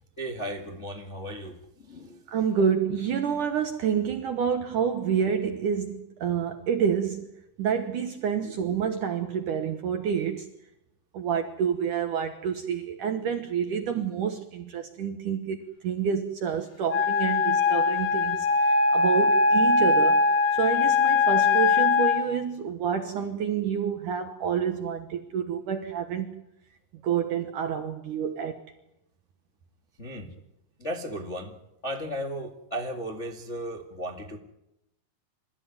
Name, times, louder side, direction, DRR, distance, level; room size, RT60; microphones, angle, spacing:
voice 1, 0.2-1.6 1.8-2.2 8.4-8.5 30.0-30.3 30.8-31.5 31.8-34.4, equal, 35° left, 1.1 m, -35 dB
voice 2, 2.3-7.3 7.6-10.5 11.1-26.4 27.0-28.6, right 7 dB, 65° right, 2.1 m, -28 dB
Wind instrument woodwind instrument, 16.9-22.3, left 4 dB, 75° left, 4.5 m, -21 dB
27.5 x 15.0 x 9.6 m
omnidirectional pair, 5.1 m